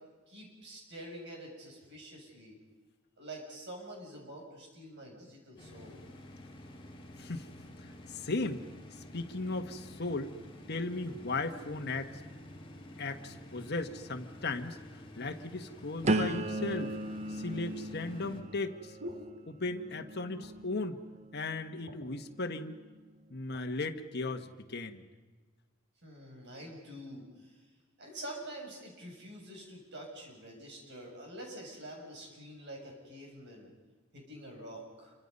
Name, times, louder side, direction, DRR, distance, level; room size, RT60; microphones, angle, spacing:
voice 1, 0.3-2.6 3.2-6.0 6.7-6.8 26.0-27.6 28.0-33.7 34.1-35.1, right 1 dB, 60° right, 0 dB, 7.5 m, -47 dB
sound 1, 5.6-18.4, left 1 dB, 25° left, 2.9 m, -50 dB
voice 2, 7.2-7.5 8.1-8.6 9.0-10.3 10.7-12.2 13.0-14.8 15.1-17.0 17.3-19.0 19.5-21.0 21.3-22.7 23.3-25.0, left 3 dB, 55° left, 5 dB, 1.5 m, -36 dB
sound 2, 16.0-21.9 22.4-22.9, right 1 dB, 35° right, 0.8 m, -37 dB
sound 3, 17.4-20.0 20.3-20.8 21.1-21.2 21.5-22.2 22.9-23.7 24.3-24.5, left 1 dB, 80° right, 4.6 m, -50 dB
28.0 x 25.0 x 5.5 m, 1.3 s
head